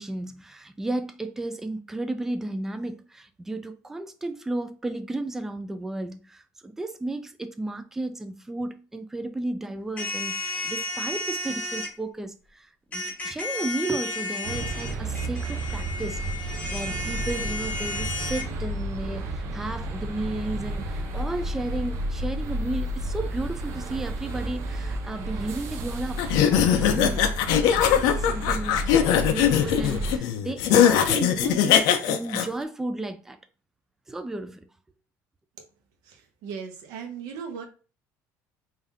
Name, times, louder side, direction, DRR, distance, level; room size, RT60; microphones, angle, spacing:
voice 1, 0.0-27.3 27.7-33.4 34.1-34.7, right 2 dB, 5° right, 0.3 m, -33 dB
sound 1, 10.0-11.9 12.9-18.4, left 2 dB, 20° left, 0.7 m, -33 dB
sound 2, 14.4-30.2, right 1 dB, 45° right, 0.6 m, -32 dB
sound 3, 26.2-32.5, left 9 dB, 80° left, 0.5 m, -21 dB
voice 2, 36.0-37.6, right 6 dB, 75° right, 1.1 m, -37 dB
3.5 x 2.6 x 3.6 m
cardioid pair, 175°, 7 cm